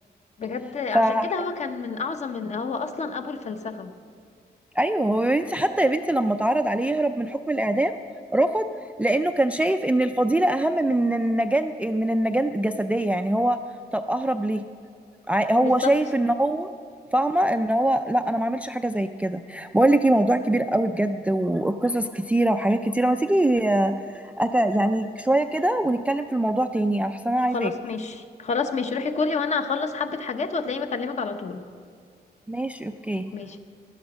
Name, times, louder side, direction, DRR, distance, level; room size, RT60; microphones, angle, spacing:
voice 1, 0.4-3.9 15.6-15.9 27.5-31.6 33.3-33.6, left 4 dB, 40° left, 8 dB, 0.9 m, -29 dB
voice 2, 0.9-1.3 4.8-8.0 8.3-8.7 9.0-13.6 13.9-14.6 15.3-16.7 17.1-27.7 32.5-33.3, right 1 dB, 10° right, 8 dB, 0.3 m, -23 dB
16.5 x 11.5 x 6.1 m, 2.2 s
wide cardioid pair, 170°, 17 cm